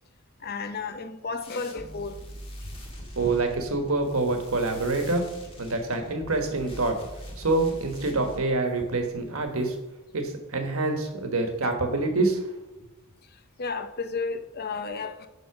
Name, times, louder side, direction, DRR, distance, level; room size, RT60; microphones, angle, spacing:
voice 1, 0.4-2.2 11.6-11.7 13.2-15.3, left 4 dB, 45° left, 8 dB, 0.7 m, -33 dB
sound 1, 1.4-9.9, equal, 25° left, 1.9 m, -43 dB
voice 2, 3.1-5.2 5.6-7.0 7.4-9.8 10.1-12.5, right 2 dB, 75° right, 4 dB, 1.4 m, -26 dB
11.0 x 3.9 x 5.9 m, 1.0 s
head